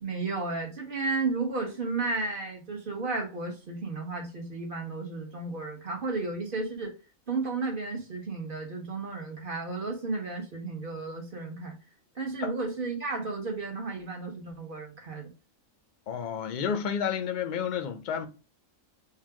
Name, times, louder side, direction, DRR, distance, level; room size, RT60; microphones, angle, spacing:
voice 1, 0.0-6.9 7.3-11.8 12.1-15.3, right 3 dB, 40° right, 1.2 m, -33 dB
voice 2, 16.1-18.3, left 7 dB, 50° left, 0.6 m, -30 dB
3.9 x 2.4 x 4.6 m
omnidirectional pair, 1.4 m